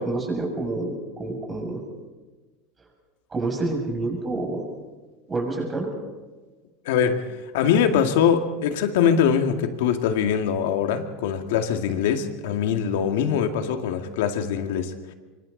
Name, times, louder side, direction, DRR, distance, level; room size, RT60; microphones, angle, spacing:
voice 1, 0.0-1.8 3.3-4.7 5.3-5.9, right 2 dB, 20° right, 1 dB, 7.0 m, -28 dB
voice 2, 6.9-15.1, left 8 dB, 80° left, 6 dB, 2.2 m, -23 dB
26.0 x 24.0 x 4.2 m, 1.3 s
supercardioid pair, 125°, 0 cm